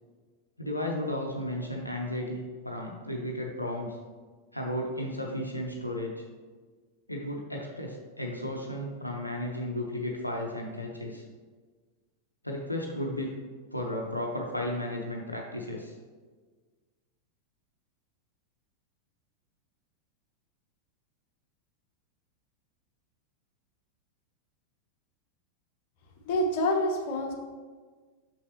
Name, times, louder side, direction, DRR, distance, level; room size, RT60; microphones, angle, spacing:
voice 1, 0.6-4.0 4.5-6.2 7.1-11.2 12.4-13.3 13.7-15.9, left 1 dB, 85° left, 0 dB, 0.6 m, -34 dB
voice 2, 26.2-27.3, left 1 dB, 45° left, 1 dB, 1.0 m, -27 dB
6.8 x 5.7 x 3.0 m, 1.4 s
figure-of-eight pair, 90°, 0 cm